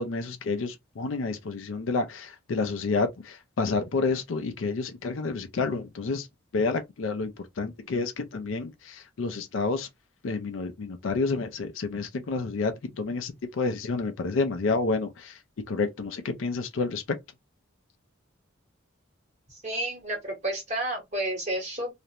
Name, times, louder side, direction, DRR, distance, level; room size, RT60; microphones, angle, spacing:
voice 1, 0.0-6.3 6.5-9.9 10.2-15.4 15.7-17.0, left 4 dB, 75° left, 0.4 m, -29 dB
voice 2, 19.5-21.9, right 1 dB, 35° right, 1.1 m, -31 dB
2.4 x 2.1 x 2.8 m
head